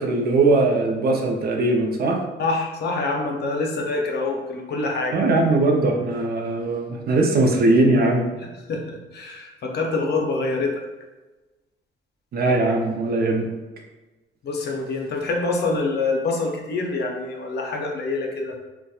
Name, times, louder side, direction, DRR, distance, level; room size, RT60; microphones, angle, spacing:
voice 1, 0.0-2.2 5.1-8.3 12.3-13.5, right 2 dB, 50° right, 1 dB, 0.5 m, -20 dB
voice 2, 2.4-5.2 8.7-10.7 14.4-18.6, left 3 dB, 55° left, 1 dB, 0.5 m, -26 dB
2.8 x 2.2 x 2.3 m, 1.2 s
cardioid pair, 90°, 20 cm